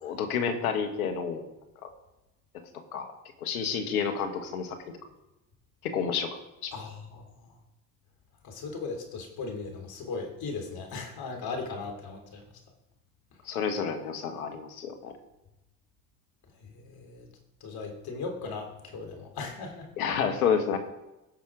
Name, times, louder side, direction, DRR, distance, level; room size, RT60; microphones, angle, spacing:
voice 1, 0.0-1.4 1.8-1.9 2.9-3.1 3.4-4.8 5.8-6.7 13.5-15.1 20.0-20.8, left 7 dB, 90° left, 6 dB, 1.4 m, -29 dB
voice 2, 6.7-7.3 8.4-12.5 16.6-17.3 17.6-19.9, left 4 dB, 55° left, 3 dB, 3.3 m, -38 dB
15.5 x 6.2 x 5.0 m, 0.98 s
hypercardioid pair, 65°, 42 cm